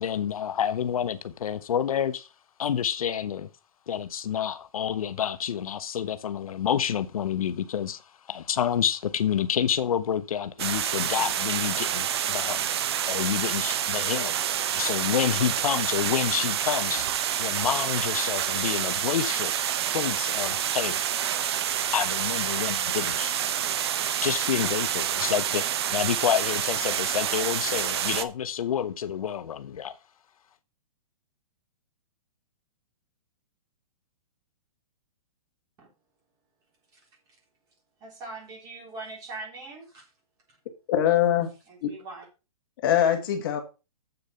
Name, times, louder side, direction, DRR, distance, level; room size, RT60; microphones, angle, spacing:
voice 1, 0.0-2.3 2.6-3.5 3.9-12.6 13.1-14.3 14.7-17.1 17.4-19.5 19.9-21.0 21.9-23.3 24.2-25.6 25.9-30.0, left 9 dB, 75° left, 0.9 m, -28 dB
sound 1, 10.6-28.2, right 10 dB, 45° right, 0.9 m, -28 dB
voice 2, 38.0-40.0 41.7-42.3, right 3 dB, 20° right, 3.6 m, -41 dB
voice 3, 40.9-41.5 41.8-41.9 42.8-43.6, left 10 dB, 40° left, 1.6 m, -22 dB
8.0 x 6.8 x 5.6 m
hypercardioid pair, 170°, 18 cm